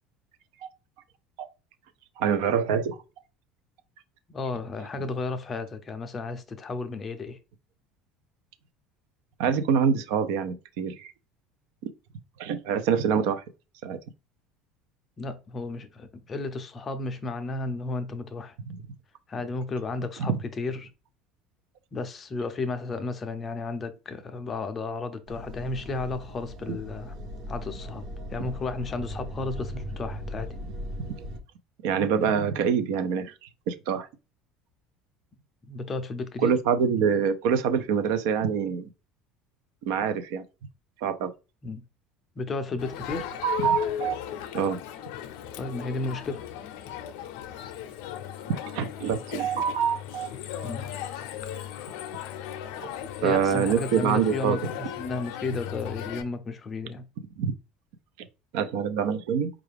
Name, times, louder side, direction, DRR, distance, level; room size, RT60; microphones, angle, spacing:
voice 1, 2.2-3.0 9.4-11.1 12.4-13.4 13.8-14.0 18.7-18.8 20.2-20.3 26.7-26.8 31.8-34.1 36.4-38.9 39.8-40.4 41.0-41.3 43.1-44.1 44.5-44.8 48.5-50.3 50.6-50.7 52.8-52.9 53.2-54.7 57.4-57.5 58.5-59.5, right 7 dB, 70° right, 0.5 m, -25 dB
voice 2, 4.3-7.4 15.2-18.6 19.3-20.9 21.9-27.1 27.5-28.0 28.3-30.5 35.7-36.6 41.6-41.8 42.4-43.3 45.6-46.4 50.6-50.9 53.2-57.1, left 3 dB, 20° left, 0.5 m, -33 dB
sound 1, 25.3-31.4, equal, 40° right, 0.8 m, -38 dB
Crowd, 42.8-56.2, left 10 dB, 70° left, 0.5 m, -37 dB
4.6 x 2.4 x 3.4 m
cardioid pair, 170°, 0 cm